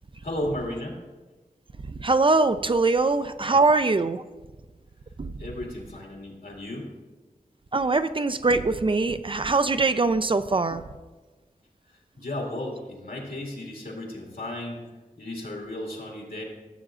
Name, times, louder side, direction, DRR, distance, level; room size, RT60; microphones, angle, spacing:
voice 1, 0.2-1.0 5.4-6.9 12.2-14.8 15.2-16.4, left 1 dB, 85° left, -2 dB, 2.1 m, -34 dB
voice 2, 2.0-4.2 5.2-5.3 7.7-10.8, right 3 dB, 35° right, 11 dB, 0.4 m, -22 dB
15.0 x 7.4 x 2.4 m, 1.2 s
wide cardioid pair, 80°, 15 cm